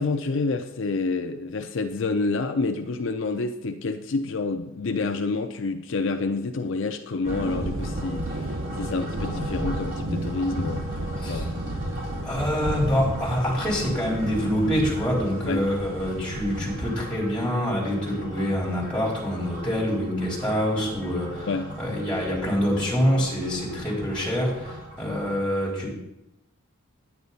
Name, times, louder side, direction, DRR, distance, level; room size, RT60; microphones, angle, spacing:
voice 1, 0.0-11.6 15.5-15.7 21.5-21.7, left 3 dB, 65° left, 6 dB, 0.5 m, -28 dB
sound 1, 7.2-25.4, equal, 40° right, 3.8 m, -38 dB
sound 2, 7.2-16.8, right 1 dB, 80° right, 1.0 m, -33 dB
voice 2, 11.2-11.5 12.2-21.5 21.8-25.9, equal, 5° left, -6 dB, 3.7 m, -26 dB
9.8 x 9.5 x 4.1 m, 0.91 s
head